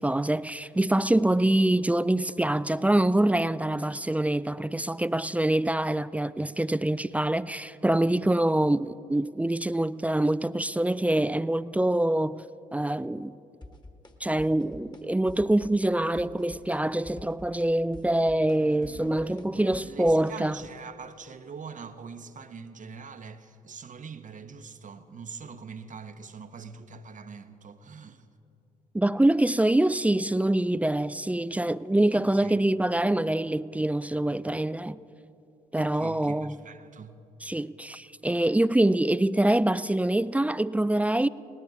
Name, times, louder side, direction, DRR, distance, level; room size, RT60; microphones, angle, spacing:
voice 1, 0.0-12.4 12.7-13.3 14.2-20.6 28.9-35.0 35.7-36.5 37.4-41.3, right 1 dB, 5° right, 0.3 m, -25 dB
sound 1, 13.6-14.1 14.4-15.0 15.3-15.9 16.2-16.8 17.0-20.7, left 2 dB, 20° left, 1.5 m, -47 dB
voice 2, 18.6-28.3 32.1-32.6 35.8-37.2, right 5 dB, 40° right, 0.9 m, -43 dB
20.0 x 18.5 x 3.6 m
figure-of-eight pair, 40°, 19 cm